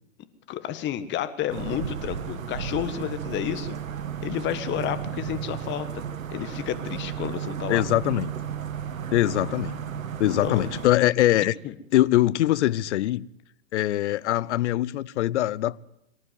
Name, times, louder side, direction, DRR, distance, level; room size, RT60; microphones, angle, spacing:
voice 1, 0.5-3.8 4.2-6.0 6.3-7.8 9.4-9.5 10.3-10.7 11.6-11.7, left 11 dB, 30° left, 1.6 m, -31 dB
sound 1, 1.5-10.9, right 8 dB, 85° right, 1.5 m, -34 dB
voice 2, 7.7-8.3 9.1-9.8 10.2-11.5 11.9-13.3 13.7-15.8, left 14 dB, 60° left, 0.8 m, -22 dB
24.0 x 11.5 x 9.5 m
hypercardioid pair, 125°, 39 cm